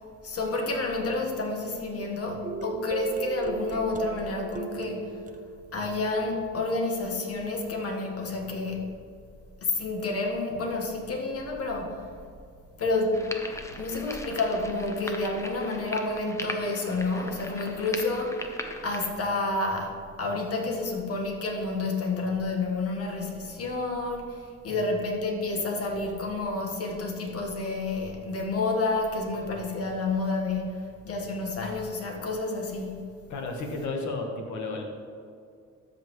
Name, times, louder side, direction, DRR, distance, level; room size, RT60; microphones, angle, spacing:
voice 1, 0.2-5.2 5.7-8.9 9.6-12.1 12.8-13.3 13.8-32.9, left 3 dB, 50° left, 1 dB, 1.5 m, -30 dB
sound 1, 2.4-6.9, right 6 dB, 25° right, 0.5 m, -36 dB
sound 2, 13.1-19.1, left 1 dB, 10° left, 0.7 m, -39 dB
voice 2, 33.3-34.8, left 3 dB, 70° left, 2 dB, 1.4 m, -33 dB
13.0 x 5.5 x 3.1 m, 2.3 s
cardioid pair, 90°, 30 cm